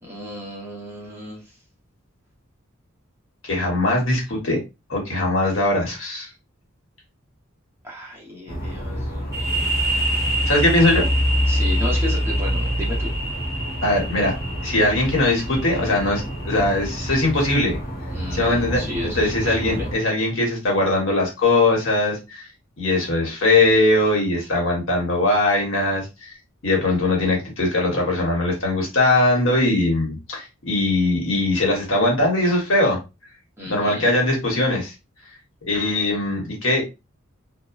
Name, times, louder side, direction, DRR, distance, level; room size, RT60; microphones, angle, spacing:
voice 1, 0.0-1.4 7.8-9.7 11.5-13.1 18.1-19.9 33.6-34.1, left 1 dB, 10° right, -4 dB, 0.9 m, -33 dB
voice 2, 3.4-4.6 4.9-6.3 10.5-11.0 13.8-14.3 14.6-17.8 18.3-18.8 19.1-22.5 22.8-26.3 26.6-33.0 33.7-34.9 35.7-36.8, left 2 dB, 70° left, -1 dB, 1.1 m, -20 dB
sound 1, 8.5-20.0, equal, 45° left, 0.8 m, -26 dB
sound 2, 9.3-16.8, right 2 dB, 15° left, 1.1 m, -29 dB
2.8 x 2.1 x 2.4 m, 0.26 s
head